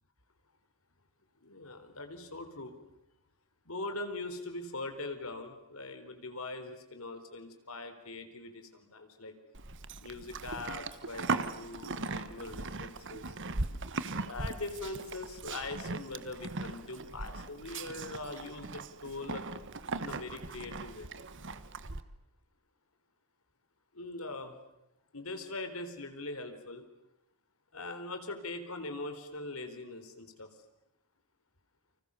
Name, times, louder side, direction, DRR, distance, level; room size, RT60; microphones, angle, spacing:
voice 1, 1.4-2.8 3.7-9.3 10.0-13.4 14.2-19.4 20.0-21.1 23.9-24.6 25.1-26.8 27.7-30.5, left 2 dB, 70° left, 8 dB, 4.1 m, -42 dB
Livestock farm animals working animals, 9.5-22.0, right 3 dB, 60° right, 1.4 m, -39 dB
29.5 x 26.0 x 7.0 m, 0.87 s
head